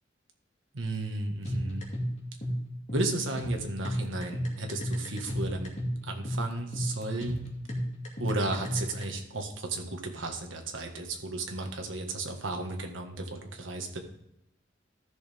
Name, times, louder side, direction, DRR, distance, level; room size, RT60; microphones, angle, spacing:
voice 1, 0.7-1.9 2.9-5.7 6.1-7.5 8.2-14.0, right 2 dB, 80° right, 3 dB, 1.6 m, -34 dB
sound 1, 1.5-9.0, equal, 40° left, 2.4 m, -33 dB
14.0 x 6.5 x 3.5 m, 0.81 s
head